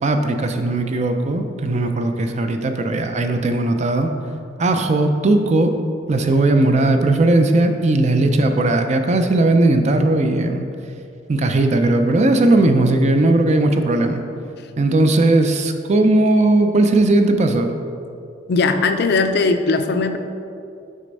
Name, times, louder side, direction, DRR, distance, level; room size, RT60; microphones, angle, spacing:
voice 1, 0.0-4.1 4.6-5.7 6.1-10.7 11.3-14.2 14.8-17.7, right 2 dB, 40° right, 6 dB, 0.4 m, -17 dB
voice 2, 18.5-20.2, left 3 dB, 60° left, 7 dB, 0.4 m, -18 dB
6.3 x 3.4 x 5.3 m, 2.6 s
head